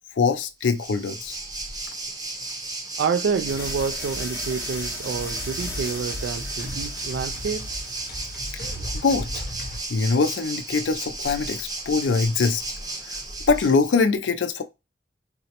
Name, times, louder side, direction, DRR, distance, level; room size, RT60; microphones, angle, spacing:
voice 1, 0.2-1.4 9.0-9.4 9.9-12.6 13.5-14.6, left 4 dB, 80° left, 0.4 m, -23 dB
Waves surf, 0.6-13.9, right 2 dB, 20° right, 0.7 m, -34 dB
voice 2, 3.0-7.7, right 5 dB, 80° right, 0.3 m, -28 dB
sound 1, 3.5-9.8, left 1 dB, 55° left, 0.8 m, -37 dB
sound 2, 3.5-9.2, left 2 dB, 15° left, 0.6 m, -39 dB
4.0 x 2.0 x 2.8 m
head